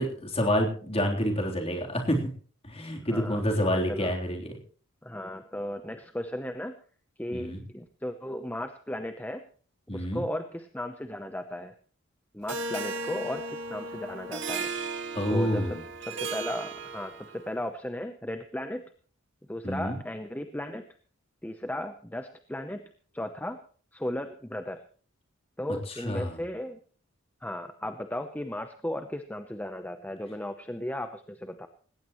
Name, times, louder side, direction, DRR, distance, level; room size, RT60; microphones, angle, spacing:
voice 1, 0.0-2.2 2.6-4.5 7.3-7.6 9.9-10.3 15.1-15.8 19.6-20.0 26.0-26.3, equal, 30° left, 1 dB, 3.5 m, -28 dB
voice 2, 3.0-4.1 5.0-6.7 7.2-9.4 9.9-11.7 12.3-14.7 15.3-18.8 19.5-20.9 21.4-22.8 23.1-23.6 23.9-24.8 25.6-26.8 27.4-31.7, left 1 dB, 10° left, 7 dB, 0.8 m, -36 dB
Harp, 12.5-17.5, right 3 dB, 60° right, 1.9 m, -36 dB
19.0 x 17.5 x 3.1 m, 0.43 s
head